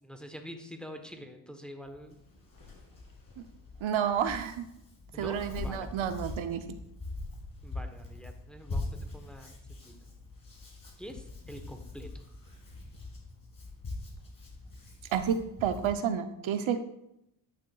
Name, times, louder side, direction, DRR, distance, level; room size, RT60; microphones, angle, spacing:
voice 1, 0.0-2.2 5.1-5.9 7.6-9.9 11.0-12.2, equal, ahead, 5 dB, 1.0 m, -46 dB
Hands, 1.8-15.9, left 2 dB, 40° left, 2.5 m, -43 dB
voice 2, 3.8-4.7 5.2-6.6 15.1-16.8, right 8 dB, 70° right, 9 dB, 0.7 m, -30 dB
10.5 x 6.3 x 2.3 m, 0.81 s
cardioid pair, 60°, 50 cm